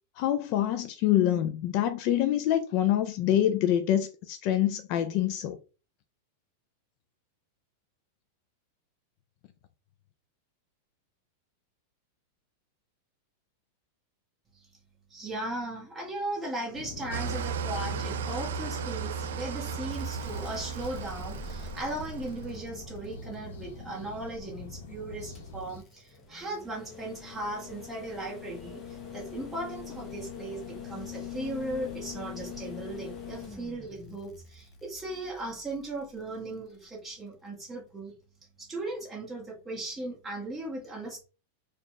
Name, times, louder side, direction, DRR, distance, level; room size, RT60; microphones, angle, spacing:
voice 1, 0.2-5.6, left 11 dB, 45° left, 0.4 m, -26 dB
voice 2, 15.1-38.1 38.6-41.2, right 2 dB, 10° right, 1.5 m, -37 dB
sound 1, 16.7-25.8, left 2 dB, 75° left, 1.0 m, -43 dB
Engine starting / Idling, 17.1-22.5, right 7 dB, 85° right, 0.4 m, -36 dB
sound 2, 19.9-24.1 25.4-36.5 38.1-38.2, left 6 dB, 25° left, 0.8 m, -44 dB
4.0 x 2.4 x 3.1 m
supercardioid pair, 155°, 0 cm